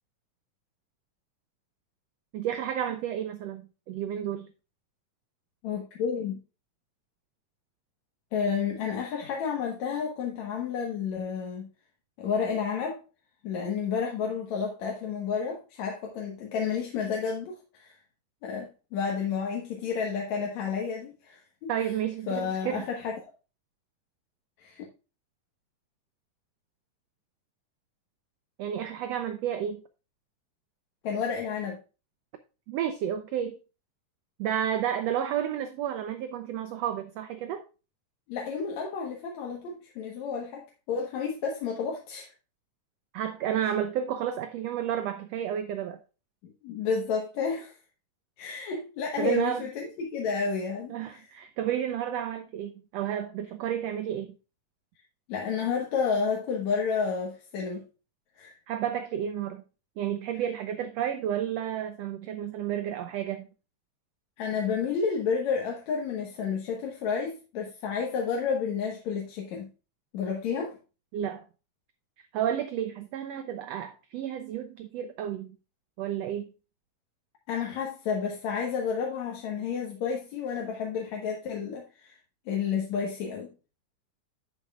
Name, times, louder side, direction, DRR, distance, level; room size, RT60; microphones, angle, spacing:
voice 1, 2.3-4.5 21.7-22.9 28.6-29.8 32.7-33.6 34.4-37.6 43.1-46.0 49.2-49.6 50.9-54.3 58.7-59.6 60.0-63.5 71.1-71.4 72.3-75.6 76.0-76.5, right 10 dB, 75° right, 1.6 m, -31 dB
voice 2, 5.6-6.4 8.3-11.7 12.2-13.0 13.4-17.9 18.4-21.7 22.3-23.2 24.6-24.9 31.0-31.8 38.3-42.3 46.4-47.7 48.4-51.2 55.3-57.8 58.4-58.5 64.4-69.7 70.1-70.8 77.5-82.1 82.5-83.5, left 6 dB, 65° left, 2.5 m, -31 dB
11.0 x 7.8 x 2.4 m
omnidirectional pair, 3.6 m